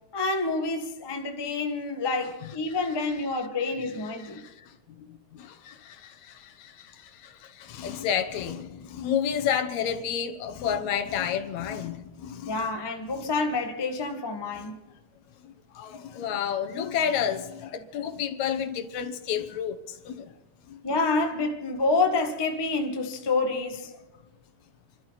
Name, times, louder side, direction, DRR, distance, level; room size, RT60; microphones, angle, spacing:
voice 1, 0.1-4.4 12.5-14.8 20.8-23.9, left 3 dB, 15° left, 0.9 m, -28 dB
voice 2, 4.4-12.7 15.4-20.3 20.7-20.8, left 8 dB, 75° left, 2.4 m, -31 dB
28.5 x 12.5 x 4.0 m
omnidirectional pair, 3.4 m